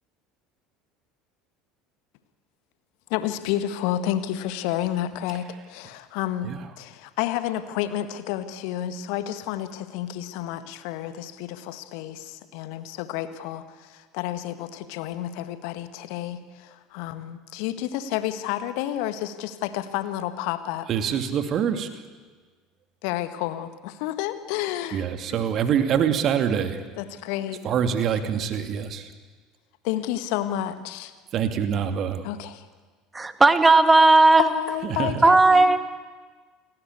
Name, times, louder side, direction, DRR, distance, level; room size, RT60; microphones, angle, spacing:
voice 1, 3.1-20.9 23.0-25.4 27.0-27.6 29.8-31.1 32.2-32.7 34.4-35.8, left 12 dB, 55° left, 11 dB, 1.7 m, -30 dB
voice 2, 20.9-21.9 24.9-26.8 27.6-29.1 31.3-32.2 35.0-35.1, right 8 dB, 40° right, 7 dB, 2.6 m, -25 dB
voice 3, 33.1-34.4 35.2-35.8, right 3 dB, 15° right, 9 dB, 2.0 m, -15 dB
29.0 x 19.5 x 8.4 m, 1.4 s
figure-of-eight pair, 65°, 0 cm